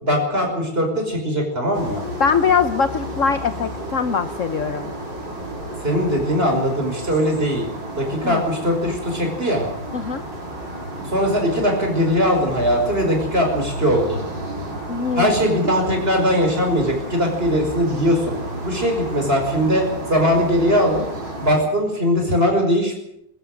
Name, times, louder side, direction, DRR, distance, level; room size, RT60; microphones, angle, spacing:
voice 1, 0.0-2.0 5.8-7.7 8.0-9.7 11.1-14.2 15.2-18.4 18.6-21.0 21.4-23.0, equal, 25° right, 2 dB, 5.7 m, -20 dB
sound 1, 1.7-21.6, right 1 dB, 60° right, 6.1 m, -32 dB
voice 2, 2.2-4.9 8.2-8.4 9.9-10.2 14.9-15.3, left 6 dB, 50° left, 11 dB, 1.1 m, -21 dB
22.5 x 13.0 x 9.1 m, 0.76 s
omnidirectional pair, 2.2 m